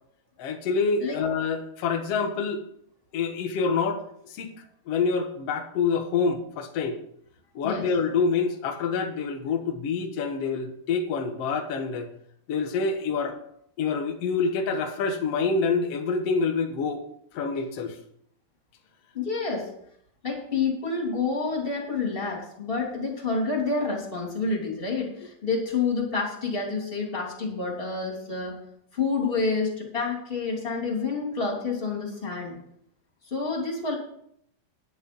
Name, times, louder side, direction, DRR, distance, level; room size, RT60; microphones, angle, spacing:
voice 1, 0.4-2.6 3.1-4.0 4.3-4.5 4.9-7.0 7.6-12.1 12.5-13.4 13.8-17.0 17.3-18.0, left 5 dB, 55° left, 3 dB, 1.8 m, -26 dB
voice 2, 19.1-19.7 20.2-28.6 28.9-32.6 33.2-34.0, left 4 dB, 15° left, -2 dB, 2.9 m, -28 dB
10.5 x 9.2 x 5.5 m, 0.71 s
omnidirectional pair, 4.4 m